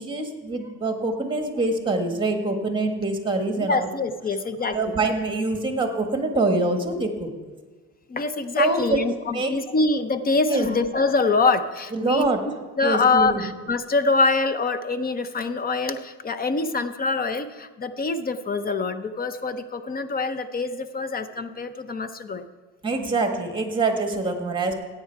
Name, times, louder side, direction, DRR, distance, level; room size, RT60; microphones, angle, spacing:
voice 1, 0.0-3.9 4.7-7.3 8.5-9.0 9.3-9.5 10.5-10.7 11.9-12.4 12.8-13.4 22.8-24.7, right 2 dB, 15° right, 5 dB, 1.5 m, -24 dB
voice 2, 3.5-5.0 8.1-12.3 12.8-22.5, left 3 dB, 30° left, 11 dB, 0.6 m, -24 dB
16.0 x 8.8 x 4.6 m, 1.3 s
cardioid pair, 130°, 31 cm